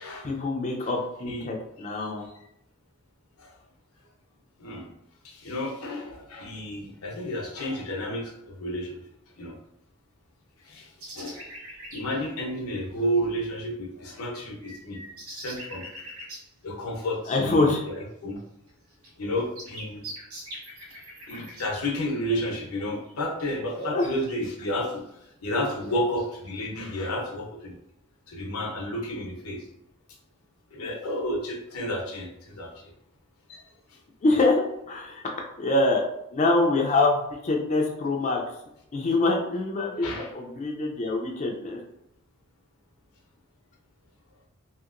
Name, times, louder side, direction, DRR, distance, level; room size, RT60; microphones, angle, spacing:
voice 1, 0.2-2.2 17.3-17.8 21.3-21.4 23.8-24.1 34.2-35.2 35.6-36.0 36.3-38.4 38.9-41.8, left 2 dB, 35° left, 0 dB, 0.4 m, -25 dB
voice 2, 2.0-2.4 3.4-3.5 4.6-4.9 5.2-9.0 9.4-9.6 10.7-10.9 11.1-11.4 11.9-15.0 15.3-15.9 16.6-18.4 19.2-20.1 21.3-25.0 25.4-27.8 28.3-29.6 30.7-32.7 33.5-33.6 39.9-40.3, equal, 85° left, 0 dB, 0.7 m, -31 dB
sound 1, 11.0-12.3 14.3-16.4 18.7-18.8 19.0-22.4 22.9-23.1 23.8-24.3, right 1 dB, 85° right, 1.0 m, -42 dB
2.8 x 2.7 x 2.4 m, 0.81 s
head